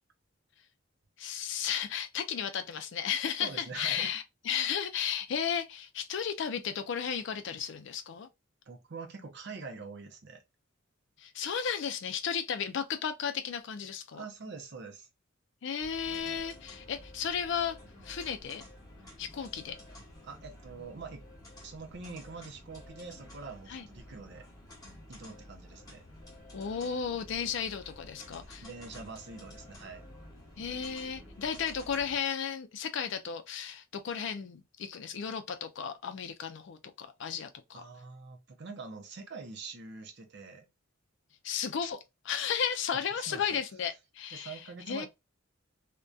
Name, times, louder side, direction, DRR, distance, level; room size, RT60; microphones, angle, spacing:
voice 1, 1.2-8.3 11.2-14.2 15.6-17.8 18.0-18.6 19.2-19.8 23.7-23.9 26.5-28.7 30.6-37.8 41.4-42.0 42.2-44.6 44.9-45.1, left 7 dB, 60° left, 0.4 m, -34 dB
voice 2, 3.4-4.1 8.7-10.4 14.1-15.1 20.2-21.3 21.6-24.5 25.1-26.0 28.6-30.1 37.7-40.7 43.2-43.6 44.3-45.1, right 4 dB, 55° right, 0.5 m, -45 dB
sound 1, 15.8-32.2, left 1 dB, 20° left, 1.0 m, -51 dB
2.6 x 2.1 x 2.2 m
head